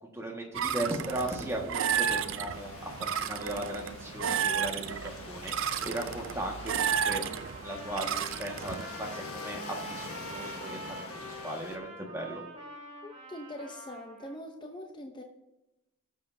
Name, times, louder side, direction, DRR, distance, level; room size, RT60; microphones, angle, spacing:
voice 1, 0.1-7.2 7.5-12.4, right 1 dB, 10° right, 0 dB, 1.6 m, -37 dB
sound 1, 0.5-8.8, right 8 dB, 60° right, 0.5 m, -32 dB
Waves surf, 2.5-11.8, left 3 dB, 80° left, 1.3 m, -45 dB
Trumpet, 6.6-14.3, right 1 dB, 30° right, 3.7 m, -46 dB
voice 2, 13.0-15.2, left 1 dB, 20° left, 4 dB, 0.7 m, -43 dB
18.0 x 7.3 x 2.7 m, 0.95 s
head